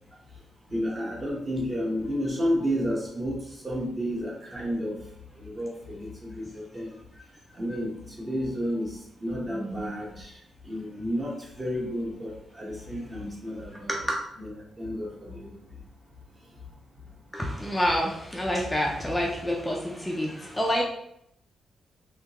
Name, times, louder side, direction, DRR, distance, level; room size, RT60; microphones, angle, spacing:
voice 1, 0.7-5.0 5.4-6.9 7.6-10.3 10.6-13.9 14.4-14.5 14.8-15.5, equal, 30° right, -3 dB, 1.1 m, -31 dB
voice 2, 9.5-9.9 13.9-14.2 17.3-20.8, equal, 10° left, -1 dB, 0.5 m, -28 dB
3.5 x 2.7 x 2.9 m, 0.75 s
cardioid pair, 95°, 0 cm